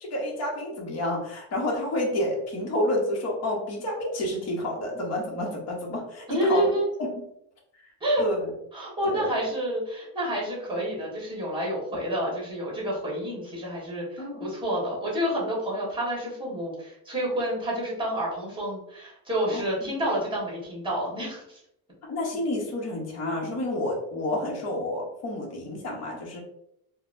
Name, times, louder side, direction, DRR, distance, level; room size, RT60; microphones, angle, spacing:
voice 1, 0.0-6.6 7.0-7.1 8.2-8.5 9.0-9.3 14.2-14.5 19.5-19.9 22.1-26.4, left 1 dB, 40° left, -1 dB, 0.9 m, -29 dB
voice 2, 6.3-6.9 8.0-8.2 8.7-21.6, equal, 10° right, -4 dB, 1.3 m, -29 dB
3.9 x 2.1 x 2.5 m, 0.76 s
cardioid pair, 155°, 40 cm